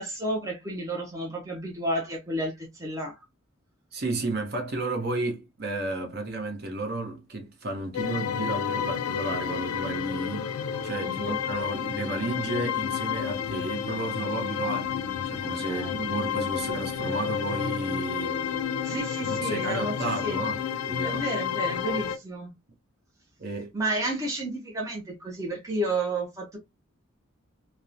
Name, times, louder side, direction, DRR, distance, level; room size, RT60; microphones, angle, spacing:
voice 1, 0.0-3.2 11.0-11.3 15.7-15.9 18.8-20.4 21.0-22.5 23.7-26.6, right 1 dB, 15° right, 0.5 m, -31 dB
voice 2, 3.9-10.5 10.8-18.4 19.2-21.2 23.4-23.7, right 2 dB, 50° right, 0.7 m, -32 dB
sound 1, 7.9-22.2, left 8 dB, 90° left, 0.3 m, -30 dB
2.8 x 2.1 x 2.4 m
head